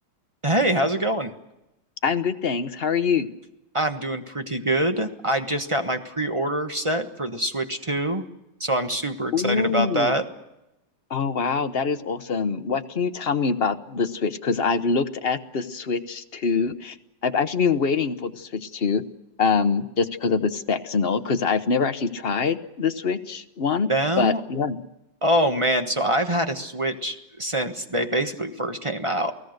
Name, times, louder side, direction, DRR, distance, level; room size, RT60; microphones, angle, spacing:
voice 1, 0.4-1.3 3.7-8.2 8.6-10.2 23.9-24.4 25.2-29.3, right 1 dB, 20° right, 6 dB, 1.1 m, -24 dB
voice 2, 2.0-3.3 9.3-10.1 11.1-16.9 17.2-19.0 19.4-23.9 24.2-24.8, left 5 dB, 40° left, 9 dB, 0.9 m, -24 dB
29.0 x 18.0 x 6.6 m, 0.90 s
omnidirectional pair, 2.2 m